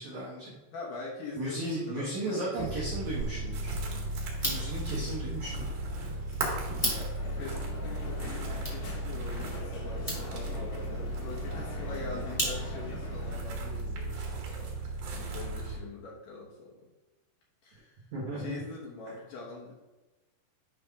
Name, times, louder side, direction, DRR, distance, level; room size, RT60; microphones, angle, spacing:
voice 1, 0.0-0.5 1.3-3.7 4.4-5.7 6.0-6.3 18.1-18.6, right 1 dB, 75° right, -5 dB, 1.7 m, -36 dB
voice 2, 0.7-2.5 2.8-2.9 4.9-5.2 6.9-16.9 17.6-18.0 18.4-19.8, left 3 dB, 85° left, -3 dB, 1.8 m, -44 dB
sound 1, 2.6-15.8, right 2 dB, 60° right, 2.7 m, -35 dB
sound 2, 4.3-13.0, equal, 15° left, 1.2 m, -39 dB
Crowd, 7.1-13.4, left 3 dB, 70° left, 1.5 m, -43 dB
8.8 x 5.5 x 3.5 m, 1.1 s
omnidirectional pair, 5.7 m